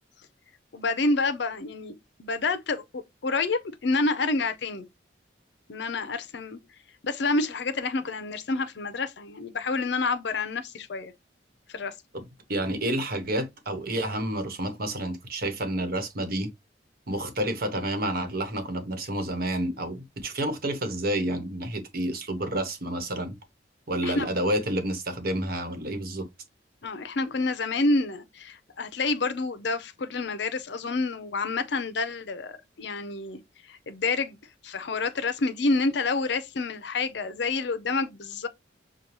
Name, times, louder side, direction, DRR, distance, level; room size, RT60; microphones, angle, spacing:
voice 1, 0.7-4.8 5.7-6.6 7.0-11.1 11.7-11.9 24.0-24.3 26.8-33.4 33.7-34.4 34.6-38.5, left 3 dB, 65° left, 0.6 m, -28 dB
voice 2, 12.5-16.5 17.1-23.3 23.9-26.3, right 1 dB, 55° right, 1.1 m, -29 dB
6.7 x 2.3 x 3.0 m
head